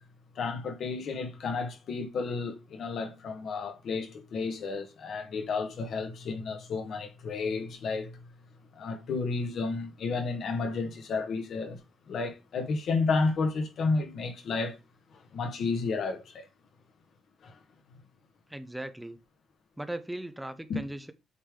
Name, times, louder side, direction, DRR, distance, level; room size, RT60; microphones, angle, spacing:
voice 1, 0.4-8.2 8.7-11.8 12.1-14.8 15.3-16.5 17.4-17.6 20.7-20.8, left 4 dB, 65° left, 1.3 m, -31 dB
voice 2, 18.5-19.2 19.8-21.1, right 1 dB, 5° right, 0.6 m, -38 dB
8.1 x 3.4 x 3.6 m
cardioid pair, 90°, 0 cm